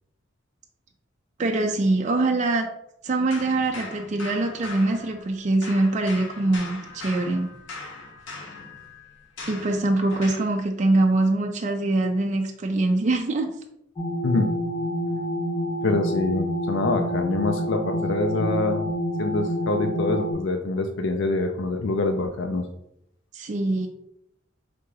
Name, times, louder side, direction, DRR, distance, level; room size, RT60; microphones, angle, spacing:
voice 1, 1.4-2.7 3.0-7.5 9.5-13.5 23.3-23.9, right 2 dB, 40° right, 3 dB, 0.4 m, -23 dB
sound 1, 3.3-5.4 5.6-10.5, left 3 dB, 85° left, 1.0 m, -40 dB
sound 2, 14.0-20.3, equal, 25° left, 1.0 m, -28 dB
voice 2, 15.8-18.9 19.2-22.7, left 2 dB, 70° left, 5 dB, 0.4 m, -25 dB
3.6 x 2.9 x 4.7 m, 0.77 s
head